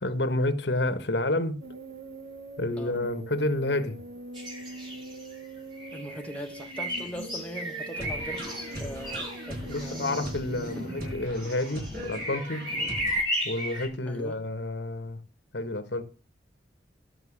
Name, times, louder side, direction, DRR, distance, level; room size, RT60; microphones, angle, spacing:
voice 1, 0.0-1.6 2.6-4.0 9.7-12.7 13.4-15.2 15.5-16.0, left 2 dB, 75° left, 1.4 m, -29 dB
sound 1, 1.6-11.3, right 2 dB, 75° right, 0.9 m, -43 dB
sound 2, 4.3-5.4 5.8-13.9, equal, 30° right, 4.1 m, -35 dB
voice 2, 5.9-8.4 8.8-10.0 10.7-11.1 14.1-14.4, equal, 10° left, 1.4 m, -40 dB
sound 3, 7.9-13.2, equal, 55° right, 8.0 m, -39 dB
13.0 x 5.9 x 7.2 m
head